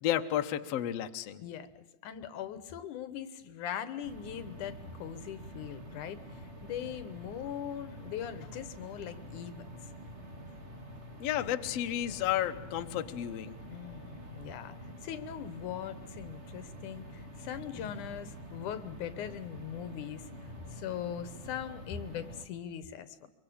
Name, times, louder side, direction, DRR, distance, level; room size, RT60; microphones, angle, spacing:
voice 1, 0.0-1.4 11.2-13.6, left 12 dB, 65° left, 7 dB, 1.9 m, -32 dB
voice 2, 1.4-9.7 13.7-14.8 15.0-20.3 20.7-23.3, left 9 dB, 85° left, 13 dB, 2.7 m, -41 dB
sound 1, 4.0-22.5, equal, 25° right, 2.0 m, -47 dB
24.5 x 23.0 x 8.6 m, 0.87 s
omnidirectional pair, 3.5 m